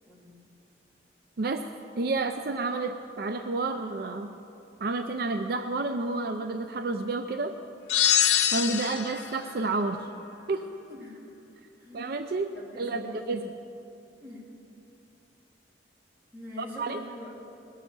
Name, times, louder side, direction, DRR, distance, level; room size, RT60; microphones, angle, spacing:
voice 1, 0.0-0.3 10.9-11.2 11.8-12.1 12.5-13.2 14.2-14.5 16.3-17.4, left 1 dB, 10° right, -6 dB, 3.2 m, -44 dB
voice 2, 2.0-4.3 4.8-7.6 8.5-10.1 10.5-10.6 11.9-12.5 12.8-13.4 16.6-17.0, right 3 dB, 60° right, 7 dB, 0.5 m, -30 dB
sound 1, 7.9-9.3, left 10 dB, 75° left, 0.6 m, -23 dB
20.5 x 7.4 x 7.0 m, 2.8 s
head